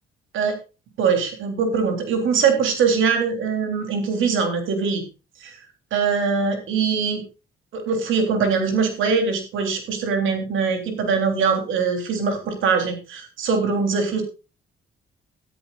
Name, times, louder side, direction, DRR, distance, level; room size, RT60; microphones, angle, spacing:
voice 1, 1.0-5.0 5.4-5.6 5.9-7.2 7.7-14.2, right 5 dB, 80° right, 6 dB, 3.5 m, -22 dB
13.5 x 13.0 x 2.5 m, 0.30 s
cardioid pair, 90°, 20 cm